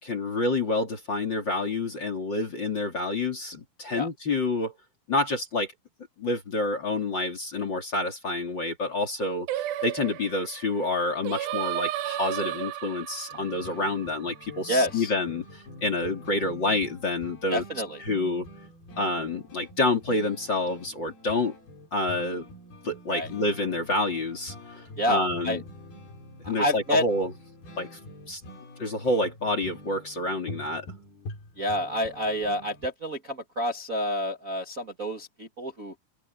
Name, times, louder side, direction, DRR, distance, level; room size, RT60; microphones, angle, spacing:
voice 1, 0.0-4.7 5.1-5.7 6.2-17.6 18.1-18.5 19.0-21.5 21.9-22.5 22.8-25.6 26.5-27.3 27.8-27.9 28.3-28.4 28.8-30.9, left 2 dB, 30° left, 3.3 m, -28 dB
Singing, 9.5-14.8, right 13 dB, 75° right, 2.6 m, -33 dB
sound 1, 13.3-32.9, left 1 dB, 75° left, 7.8 m, -46 dB
voice 2, 14.7-15.1 17.5-18.0 23.1-23.3 25.0-25.6 26.4-27.0 31.6-35.9, equal, 30° right, 1.6 m, -28 dB
open air
omnidirectional pair, 4.4 m